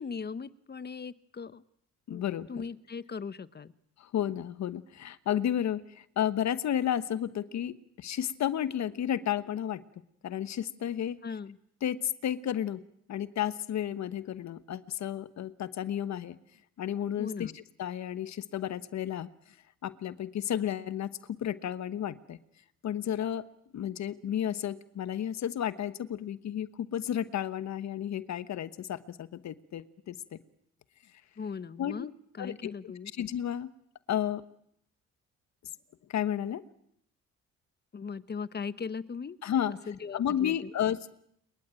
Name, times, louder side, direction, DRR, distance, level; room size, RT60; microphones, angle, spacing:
voice 1, 0.0-1.6 2.1-2.2 2.5-3.7 11.2-11.6 17.2-17.6 31.4-33.1 37.9-39.4 39.7-40.7, left 5 dB, 35° left, 16 dB, 1.2 m, -39 dB
voice 2, 2.1-2.7 4.0-9.8 10.2-11.2 11.8-12.8 13.1-16.4 16.8-19.3 19.8-21.1 21.4-22.4 22.8-23.4 23.7-30.4 31.8-32.0 32.4-32.7 33.2-33.7 34.1-34.4 36.1-36.6 39.4-39.7 40.1-41.1, left 10 dB, 65° left, 15 dB, 1.2 m, -32 dB
27.0 x 22.5 x 9.0 m, 0.72 s
cardioid pair, 90°, 30 cm